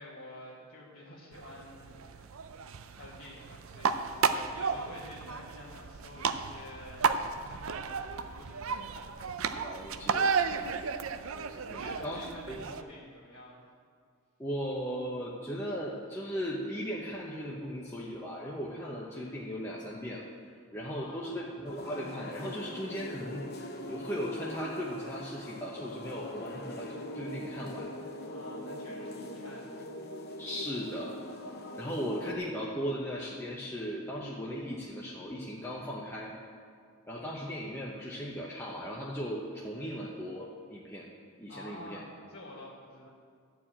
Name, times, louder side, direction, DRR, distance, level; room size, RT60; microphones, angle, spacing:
voice 1, 0.0-2.3 2.9-9.0 10.9-11.3 11.7-13.6 20.8-21.4 28.3-29.8 41.5-43.1, left 1 dB, 70° left, -7 dB, 1.7 m, -49 dB
sound 1, 1.3-12.8, right 5 dB, 70° right, 0.5 m, -33 dB
voice 2, 9.5-10.3 11.6-12.6 14.4-20.2 20.7-27.9 30.4-31.1 31.7-36.3 37.1-41.1 41.4-42.0, equal, 10° left, -5 dB, 0.9 m, -37 dB
sound 2, 21.6-32.3, left 1 dB, 45° left, 0.8 m, -42 dB
13.0 x 4.7 x 8.7 m, 2.1 s
head